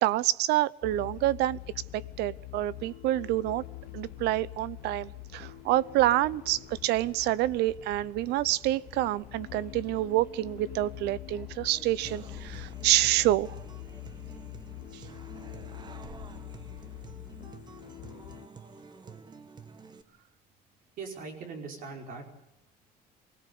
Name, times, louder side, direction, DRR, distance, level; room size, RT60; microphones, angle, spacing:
voice 1, 0.0-1.6 1.9-3.6 3.9-13.5, right 15 dB, 85° right, 21 dB, 0.8 m, -27 dB
sound 1, 0.8-18.5, left 17 dB, 70° left, 0.9 m, -44 dB
Subway metro underground, 3.3-17.6, right 1 dB, 10° right, 3.1 m, -57 dB
Human voice / Acoustic guitar, 12.0-20.0, right 5 dB, 25° right, 1.3 m, -49 dB
voice 2, 21.0-22.2, right 4 dB, 60° right, 3 dB, 5.1 m, -41 dB
24.0 x 17.5 x 8.5 m, 0.88 s
cardioid pair, 140°, 17 cm